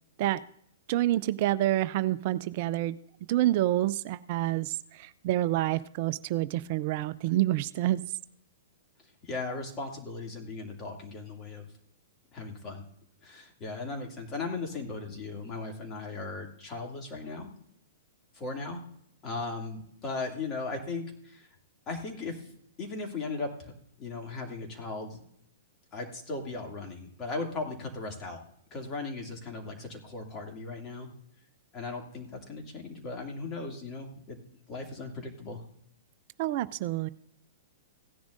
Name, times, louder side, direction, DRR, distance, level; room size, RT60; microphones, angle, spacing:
voice 1, 0.9-3.0 3.3-8.0 36.4-37.1, right 15 dB, 50° right, 15 dB, 0.4 m, -28 dB
voice 2, 9.2-11.7 12.3-12.8 13.2-17.5 18.3-18.8 19.2-21.5 21.9-22.5 22.8-23.7 24.0-25.2 25.9-28.4 28.7-31.1 31.7-34.4 34.7-35.6, left 3 dB, 30° left, 2 dB, 2.5 m, -37 dB
16.5 x 10.5 x 2.6 m, 0.69 s
hypercardioid pair, 110°, 0 cm